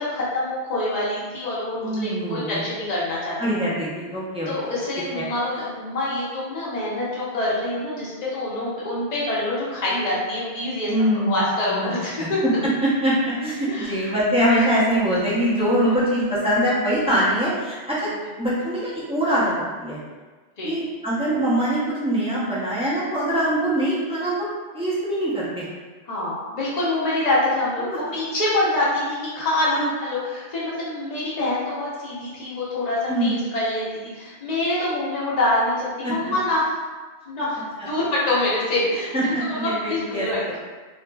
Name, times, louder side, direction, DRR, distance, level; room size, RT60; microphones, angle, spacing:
voice 1, 0.0-3.4 4.5-10.9 11.3-12.4 13.6-14.1 18.0-18.2 20.6-20.8 26.1-33.8 34.1-36.7 37.3-40.4, left 1 dB, 40° left, -7 dB, 0.8 m, -25 dB
voice 2, 1.8-2.6 3.4-4.7 5.2-5.3 10.9-11.4 11.7-11.9 12.2-12.5 12.8-18.1 18.4-20.0 20.6-24.5 24.7-25.6 27.8-28.0 29.7-29.9 33.1-33.3 36.0-36.2 39.1-40.3, right 1 dB, 5° right, -10 dB, 0.5 m, -23 dB
2.9 x 2.5 x 2.2 m, 1.3 s
omnidirectional pair, 1.2 m